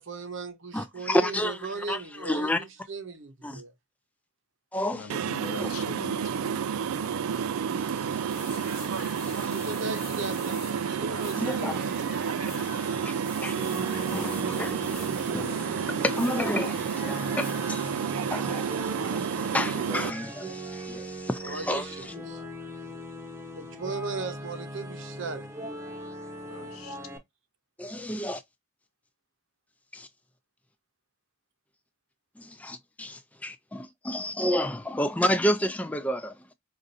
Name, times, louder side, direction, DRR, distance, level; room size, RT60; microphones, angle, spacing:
voice 1, 0.0-3.7 9.4-12.3 21.4-22.4 23.6-25.5, right 4 dB, 65° right, 0.8 m, -37 dB
voice 2, 0.7-1.6 1.9-2.6 3.4-3.6 4.7-5.1 5.4-5.7 8.0-8.2 9.2-9.5 11.4-11.7 12.6-22.1 27.8-28.4 29.9-30.1 32.4-36.3, left 1 dB, 5° left, 0.4 m, -31 dB
voice 3, 4.9-6.6 26.5-27.0, left 5 dB, 90° left, 0.7 m, -42 dB
sound 1, 5.1-20.1, right 7 dB, 85° right, 0.4 m, -30 dB
sound 2, 8.1-18.0, left 8 dB, 45° left, 0.7 m, -45 dB
sound 3, 13.5-27.2, right 1 dB, 15° right, 1.0 m, -39 dB
5.2 x 2.5 x 2.6 m
head